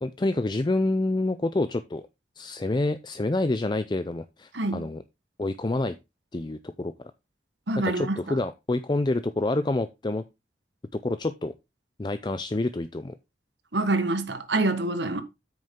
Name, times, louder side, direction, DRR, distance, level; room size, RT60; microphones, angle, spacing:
voice 1, 0.0-2.0 2.4-5.0 5.4-6.0 6.3-6.9 7.8-10.2 10.9-11.5 12.0-13.2, left 2 dB, 25° left, 0.4 m, -27 dB
voice 2, 4.5-4.9 7.7-8.4 13.7-15.2, right 2 dB, 85° right, 1.5 m, -26 dB
8.7 x 6.4 x 3.7 m
head